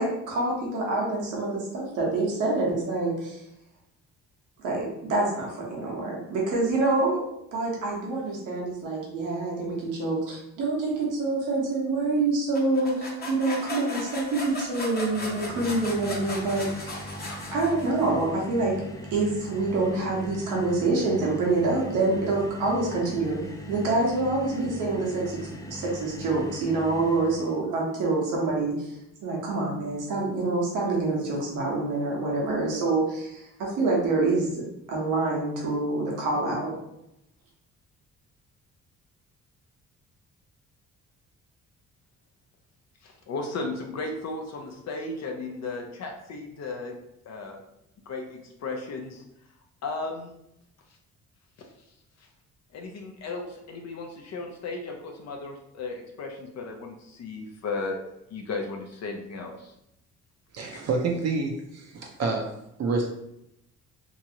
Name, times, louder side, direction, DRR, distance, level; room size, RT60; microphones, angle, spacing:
voice 1, 0.0-3.4 4.6-7.2 7.5-17.2 17.5-18.8 19.1-23.4 23.7-28.9 29.2-36.7, right 2 dB, 90° right, -3 dB, 1.1 m, -26 dB
sound 1, 12.5-18.2, left 2 dB, 30° left, 0.9 m, -37 dB
sound 2, 15.0-27.6, equal, 10° left, 0.4 m, -40 dB
voice 2, 43.0-47.0 47.3-47.6 48.1-49.2 49.8-50.4 51.6-51.7 52.2-52.3 52.7-58.0 58.3-59.7 60.7-60.8, left 3 dB, 60° left, 2 dB, 0.6 m, -35 dB
voice 3, 60.5-62.5 62.8-63.1, right 3 dB, 55° right, 1 dB, 0.5 m, -28 dB
2.9 x 2.5 x 2.8 m, 0.81 s
cardioid pair, 90°, 30 cm